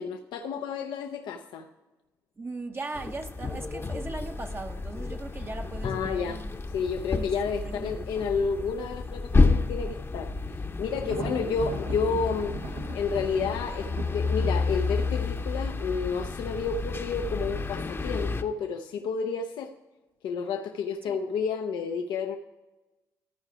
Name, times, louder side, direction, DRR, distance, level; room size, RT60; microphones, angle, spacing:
voice 1, 0.0-1.7 5.8-6.4 6.7-10.3 10.8-19.7 20.2-22.4, left 5 dB, 85° left, 0.6 m, -31 dB
voice 2, 2.4-6.5 7.1-7.3 7.6-8.0 11.0-11.4 21.1-21.2, right 3 dB, 30° right, 0.7 m, -39 dB
sound 1, 2.9-18.4, left 3 dB, 30° left, 0.8 m, -30 dB
Thunder, 10.9-16.8, right 3 dB, 90° right, 1.0 m, -41 dB
14.0 x 4.9 x 4.9 m
supercardioid pair, 65°, 8 cm